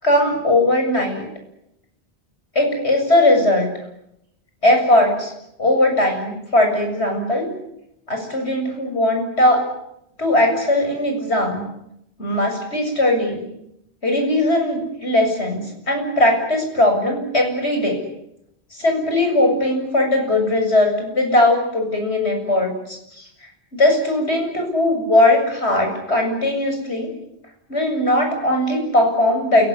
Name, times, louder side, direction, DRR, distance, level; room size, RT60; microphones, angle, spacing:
voice 1, 0.0-1.2 2.5-3.7 4.6-5.3 5.6-7.5 8.1-9.7 10.2-11.6 12.2-13.4 14.0-18.0 18.7-23.0 23.7-27.1 27.7-29.7, left 1 dB, 80° left, 3 dB, 8.0 m, -19 dB
28.5 x 18.5 x 9.8 m, 0.81 s
omnidirectional pair, 1.1 m